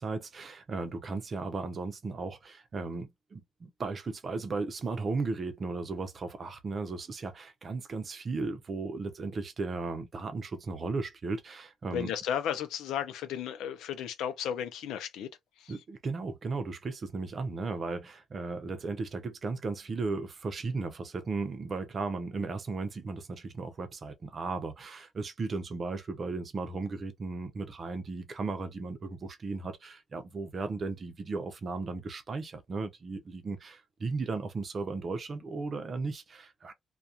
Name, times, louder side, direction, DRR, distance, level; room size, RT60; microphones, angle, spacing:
voice 1, 0.0-12.1 15.7-36.7, right 3 dB, 45° right, 0.6 m, -36 dB
voice 2, 11.9-15.3 15.6-15.8, left 9 dB, 85° left, 0.5 m, -34 dB
2.3 x 2.2 x 2.7 m
cardioid pair, 90°, 0 cm